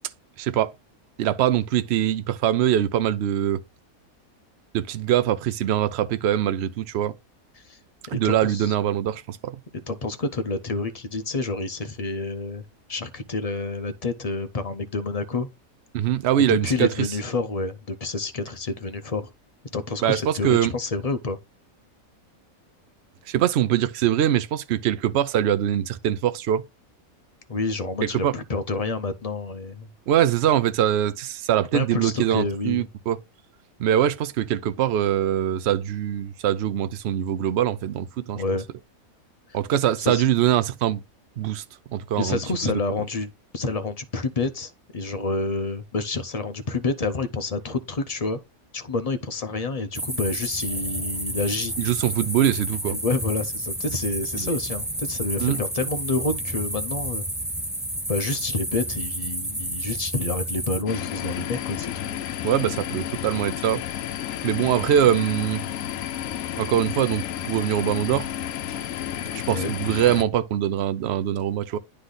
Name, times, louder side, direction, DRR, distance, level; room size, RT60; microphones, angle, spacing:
voice 1, 0.4-0.7 1.2-3.6 4.7-7.1 8.1-9.6 15.9-17.1 20.0-20.7 23.3-26.6 28.0-28.3 30.1-33.2 33.8-38.4 39.5-41.0 41.4-41.6 41.9-42.7 51.8-53.0 54.4-54.5 55.4-55.6 62.4-63.8 64.4-65.6 66.6-68.3 69.3-71.8, right 11 dB, 60° right, 0.8 m, -23 dB
voice 2, 8.1-8.7 9.9-12.6 12.9-15.5 16.5-19.3 19.7-21.4 27.5-29.9 31.7-32.8 38.3-38.7 39.5-39.6 40.0-40.2 42.2-48.4 48.7-51.7 52.9-57.2 58.1-62.2 69.5-69.7, left 3 dB, 45° left, 0.5 m, -28 dB
sound 1, 49.9-60.8, right 1 dB, 10° right, 0.6 m, -31 dB
sound 2, 60.9-70.2, left 11 dB, 70° left, 0.9 m, -31 dB
9.8 x 3.3 x 3.7 m
omnidirectional pair, 1.5 m